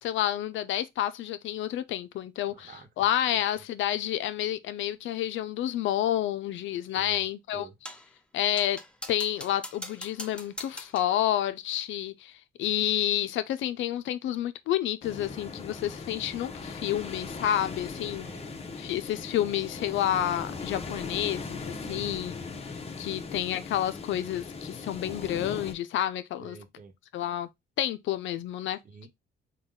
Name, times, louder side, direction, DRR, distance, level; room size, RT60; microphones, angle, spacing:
voice 1, 0.0-7.7 8.3-8.8 9.1-18.3 18.8-26.6 27.1-27.5 27.8-28.8, left 12 dB, 75° left, 0.4 m, -30 dB
voice 2, 2.5-2.9 3.6-3.7 7.0-7.2 7.5-7.7 17.9-18.7 21.8-22.3 26.4-26.9 28.8-29.1, right 4 dB, 45° right, 1.0 m, -48 dB
Geology Stones and Bars, 7.8-8.1 8.6-11.2, left 1 dB, 5° left, 0.5 m, -42 dB
sound 1, 15.0-25.7, left 4 dB, 30° left, 0.8 m, -39 dB
3.9 x 2.3 x 3.6 m
cardioid pair, 90°, 20 cm